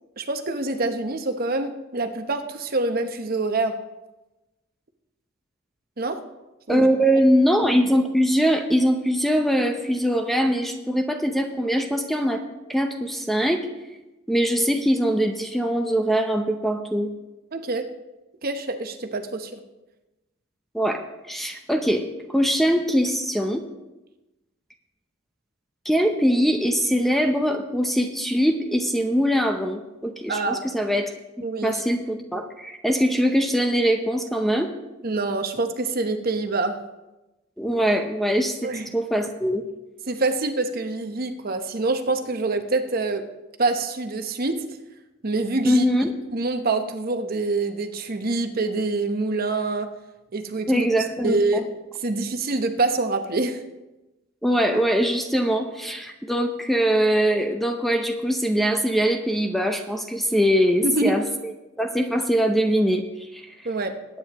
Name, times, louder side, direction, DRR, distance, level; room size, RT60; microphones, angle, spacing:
voice 1, 0.2-3.7 6.0-6.2 6.7-6.9 17.5-17.9 18.4-19.6 30.3-30.7 31.4-31.8 35.0-36.8 38.6-38.9 40.1-43.2 43.6-44.6 45.2-45.8 46.3-49.9 50.3-50.9 51.2-51.7 52.0-53.6 60.8-61.2 63.6-63.9, right 3 dB, 45° right, 7 dB, 0.9 m, -25 dB
voice 2, 6.7-12.4 12.7-13.7 14.3-17.1 20.7-21.0 21.3-22.0 22.3-23.7 25.8-31.1 31.4-34.7 37.6-39.6 45.6-46.1 50.7-51.6 54.4-61.5 61.8-63.5, equal, ahead, 5 dB, 0.7 m, -22 dB
20.0 x 9.3 x 3.0 m, 1.0 s
head